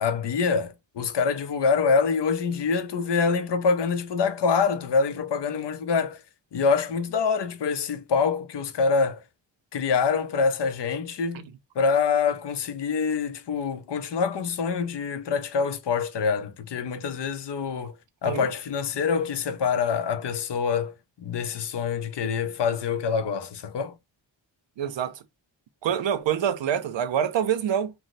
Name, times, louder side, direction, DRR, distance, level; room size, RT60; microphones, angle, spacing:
voice 1, 0.0-6.2 6.5-9.2 9.7-11.4 11.8-17.9 18.2-23.9, left 5 dB, 60° left, 0.6 m, -25 dB
voice 2, 24.8-25.2 25.8-27.9, right 9 dB, 70° right, 0.5 m, -26 dB
3.0 x 2.0 x 4.0 m
wide cardioid pair, 170°, 46 cm